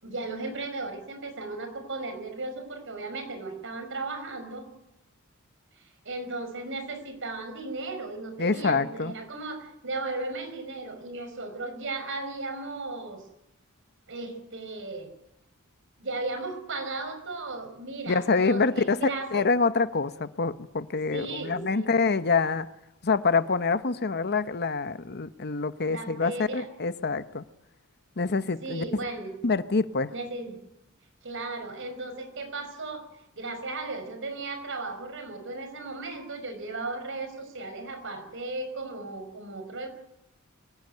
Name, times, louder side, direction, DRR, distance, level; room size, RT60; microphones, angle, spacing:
voice 1, 0.0-4.7 5.7-13.2 14.1-15.1 16.0-19.5 21.1-21.9 25.9-26.7 28.6-29.3 30.1-30.6 31.2-33.0 33.4-39.9, right 3 dB, 60° right, 7 dB, 5.3 m, -36 dB
voice 2, 8.4-9.1 18.1-22.7 23.0-27.4 28.2-28.8 29.4-30.1, left 4 dB, 50° left, 12 dB, 1.0 m, -26 dB
25.0 x 16.5 x 9.3 m, 0.87 s
head